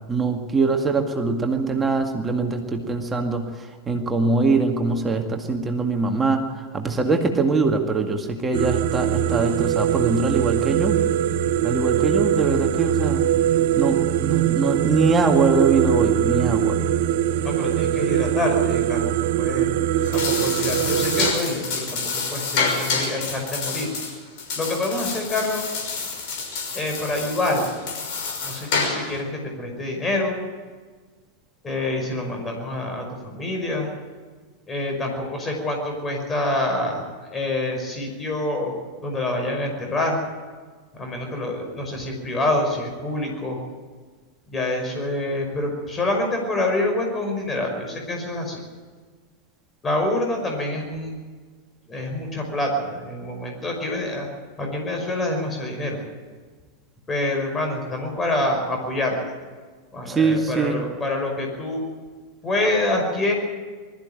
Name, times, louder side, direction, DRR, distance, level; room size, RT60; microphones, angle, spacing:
voice 1, 0.1-11.0 11.6-13.2 13.8-16.8 60.1-60.8, right 4 dB, 15° right, 3 dB, 2.2 m, -23 dB
sound 1, 8.5-21.3, right 11 dB, 55° right, 0.8 m, -22 dB
voice 2, 17.4-19.7 20.1-23.9 24.6-25.7 26.7-27.9 28.4-29.3 29.6-30.3 31.6-33.9 34.7-38.7 39.0-40.2 40.9-43.6 44.5-48.6 49.8-51.1 51.9-54.3 54.6-56.0 57.1-59.2 59.9-61.8 62.4-63.3, left 2 dB, 20° left, 2 dB, 5.5 m, -26 dB
sound 2, 19.9-29.2, left 4 dB, 50° left, 5.9 m, -28 dB
21.0 x 14.0 x 9.1 m, 1.5 s
figure-of-eight pair, 90°, 0 cm